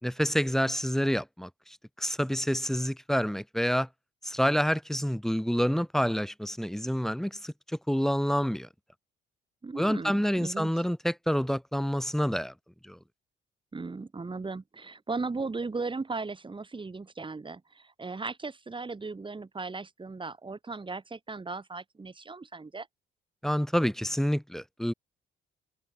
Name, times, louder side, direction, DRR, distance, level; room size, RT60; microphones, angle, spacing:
voice 1, 0.0-3.9 4.2-7.5 7.9-8.7 9.8-12.5 12.8-13.0 23.4-24.9, equal, ahead, 2.1 m, -28 dB
voice 2, 9.6-10.7 13.7-22.9, right 3 dB, 25° right, 3.3 m, -37 dB
cardioid pair, 90°, 20 cm